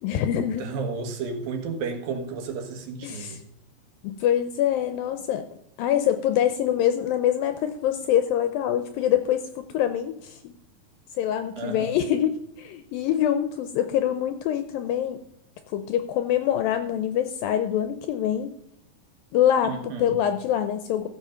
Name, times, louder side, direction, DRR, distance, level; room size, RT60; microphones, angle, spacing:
voice 1, 0.0-0.7 3.0-3.4 4.0-5.5 5.8-10.5 11.2-15.2 15.7-18.6 19.3-19.7 20.0-21.1, left 10 dB, 80° left, 9 dB, 2.1 m, -25 dB
voice 2, 0.6-3.4 11.6-12.0 19.6-20.2, right 4 dB, 70° right, 5 dB, 2.9 m, -32 dB
14.0 x 7.3 x 5.7 m, 0.79 s
omnidirectional pair, 4.7 m